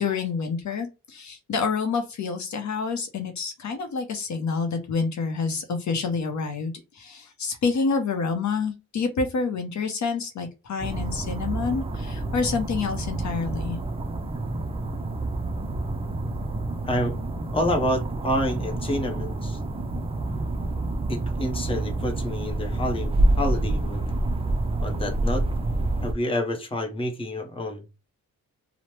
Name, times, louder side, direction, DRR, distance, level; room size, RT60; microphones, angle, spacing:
voice 1, 0.0-13.8, left 5 dB, 60° left, 0.6 m, -28 dB
sound 1, 10.8-26.1, right 2 dB, 20° right, 0.4 m, -28 dB
voice 2, 16.8-17.2 17.5-19.6 21.1-24.1 24.8-25.5 26.0-27.8, left 1 dB, 15° left, 0.7 m, -28 dB
2.9 x 2.0 x 3.1 m
wide cardioid pair, 120°, 32 cm